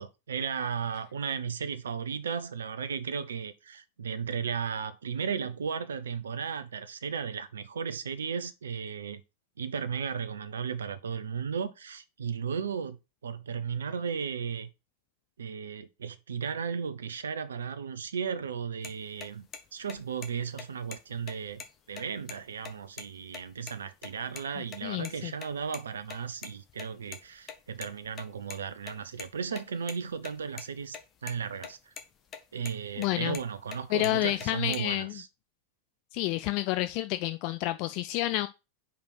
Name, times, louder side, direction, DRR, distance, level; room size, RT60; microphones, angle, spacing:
voice 1, 0.0-9.2 9.6-13.0 13.2-14.7 15.4-31.9 32.5-35.3, right 6 dB, 65° right, 0.7 m, -35 dB
sound 1, 18.8-18.9 19.2-19.3 19.5-19.6 19.9-20.3 20.6-20.7 20.9-21.0 21.3-22.3 22.6-22.7 23.0-23.1 23.3-23.7 24.0-24.5 24.7-25.8 26.1-28.6 28.9-30.6 30.9-31.0 31.3-31.7 32.0-32.4 32.7-33.8 34.0-34.8, left 6 dB, 25° left, 1.2 m, -42 dB
voice 2, 24.8-25.3 33.0-33.4 33.9-35.2 36.1-38.5, left 16 dB, 45° left, 0.4 m, -29 dB
5.2 x 4.3 x 5.7 m
figure-of-eight pair, 90°, 0 cm